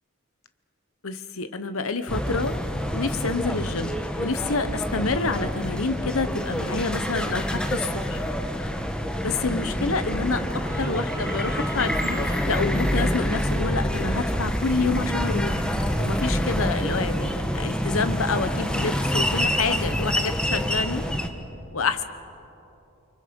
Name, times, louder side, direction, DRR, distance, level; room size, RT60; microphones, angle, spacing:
voice 1, 1.0-2.6 2.9-8.2 9.2-10.4 10.8-15.6 16.0-21.1 21.7-22.0, left 4 dB, 75° left, 10 dB, 1.1 m, -28 dB
sound 1, 2.1-21.3, equal, 5° left, 1.1 m, -27 dB
sound 2, 10.5-12.5 15.3-15.6 16.9-17.1 18.7-19.4, right 2 dB, 15° right, 1.4 m, -41 dB
29.0 x 24.5 x 5.3 m, 2.9 s
head